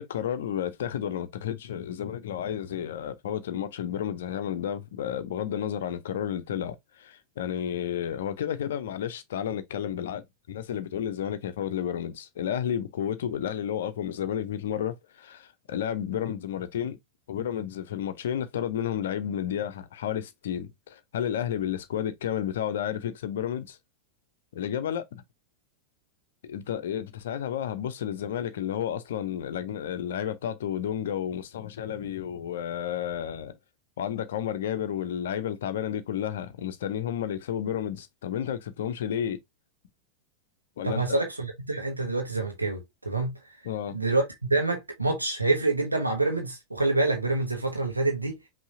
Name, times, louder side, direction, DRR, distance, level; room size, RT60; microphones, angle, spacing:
voice 1, 0.0-17.0 17.3-23.8 24.5-25.2 26.4-33.5 34.0-39.4 40.8-41.0 43.6-44.0, left 9 dB, 60° left, 0.7 m, -31 dB
voice 2, 40.8-43.3 43.9-44.2 44.5-48.4, right 2 dB, 80° right, 1.0 m, -26 dB
5.6 x 2.8 x 2.7 m
figure-of-eight pair, 90°, 0 cm